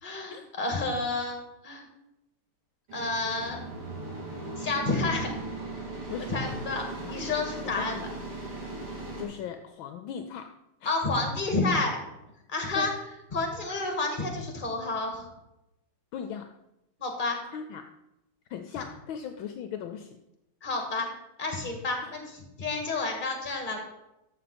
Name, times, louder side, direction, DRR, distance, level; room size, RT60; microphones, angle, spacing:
voice 1, 0.0-1.4 1.6-1.8 2.9-3.7 4.6-5.3 6.3-8.0 10.9-12.0 12.5-12.9 13.3-15.3 17.0-17.4 18.8-18.9 20.6-21.1 21.4-23.8, left 3 dB, 25° left, 3 dB, 2.0 m, -30 dB
sound 1, 2.9-9.2, right 3 dB, 80° right, 3.8 m, -38 dB
voice 2, 6.1-6.4 7.0-7.1 7.6-8.1 9.2-10.5 10.8-10.9 12.7-13.0 16.1-16.5 17.5-17.8 18.5-20.2 22.0-22.2, left 8 dB, 75° left, 7 dB, 1.4 m, -38 dB
13.0 x 6.9 x 4.3 m, 0.91 s
omnidirectional pair, 2.4 m